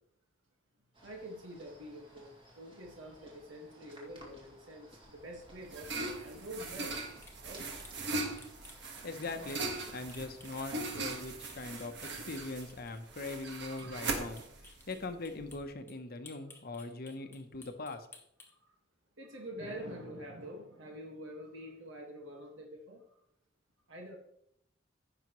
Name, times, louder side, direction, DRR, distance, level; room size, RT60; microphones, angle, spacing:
sound 1, 0.9-10.9, right 1 dB, 25° right, 2.2 m, -58 dB
voice 1, 1.0-7.0 7.4-7.7 16.2-16.4 18.6-18.7 19.2-23.2 23.9-24.1, equal, 80° right, 0 dB, 1.7 m, -46 dB
sound 2, 5.1-15.7, right 2 dB, 60° right, 1.5 m, -40 dB
sound 3, 6.7-10.9 11.1-11.2 11.5-13.0 13.3-15.6 15.9-16.0 16.3-18.5, left 3 dB, 15° left, 1.3 m, -55 dB
voice 2, 9.0-9.6 9.9-18.1, left 3 dB, 50° left, 8 dB, 0.9 m, -41 dB
15.5 x 5.8 x 3.1 m, 0.75 s
head